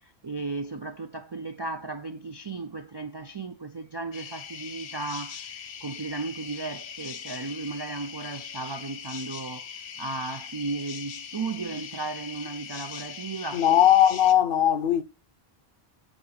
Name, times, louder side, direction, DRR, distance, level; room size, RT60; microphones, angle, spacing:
voice 1, 0.0-9.7 10.0-13.6, right 3 dB, 45° right, 0.3 m, -35 dB
sound 1, 4.1-14.3, left 7 dB, 90° left, 1.0 m, -41 dB
voice 2, 13.5-15.0, left 11 dB, 65° left, 0.8 m, -19 dB
8.1 x 3.8 x 5.8 m
omnidirectional pair, 1.0 m